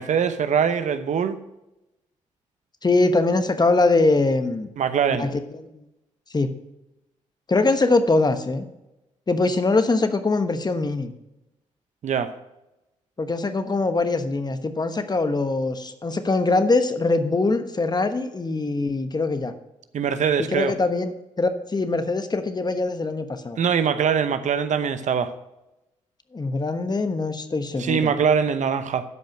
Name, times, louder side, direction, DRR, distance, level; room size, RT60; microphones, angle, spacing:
voice 1, 0.0-1.4 4.8-5.3 12.0-12.3 19.9-20.7 23.6-25.3 27.8-29.0, right 7 dB, 65° right, 10 dB, 0.9 m, -22 dB
voice 2, 2.8-4.7 5.2-5.7 6.3-6.5 7.5-8.6 9.3-11.1 13.2-19.5 20.4-23.6 26.3-28.1, left 3 dB, 30° left, 9 dB, 1.2 m, -22 dB
12.0 x 5.2 x 6.2 m, 0.93 s
supercardioid pair, 55°, 14 cm